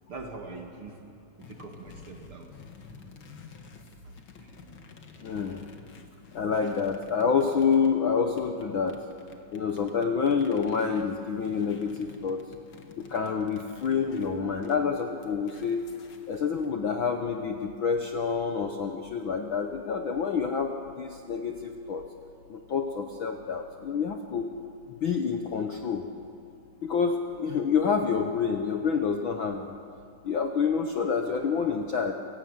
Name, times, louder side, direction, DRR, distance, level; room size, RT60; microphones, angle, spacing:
voice 1, 0.1-1.0 1.4-2.5 4.0-4.1 4.4-4.5, right 3 dB, 45° right, 2 dB, 2.5 m, -42 dB
sound 1, 1.4-8.0 8.4-16.7, left 5 dB, 45° left, 2.0 m, -51 dB
voice 2, 5.2-5.7 6.3-9.0 9.5-12.4 13.0-15.9 16.3-22.1 22.5-24.5 25.0-26.1 26.8-29.7 30.2-32.1, left 6 dB, 70° left, 4 dB, 1.2 m, -28 dB
28.5 x 17.0 x 9.4 m, 2.6 s
omnidirectional pair, 3.7 m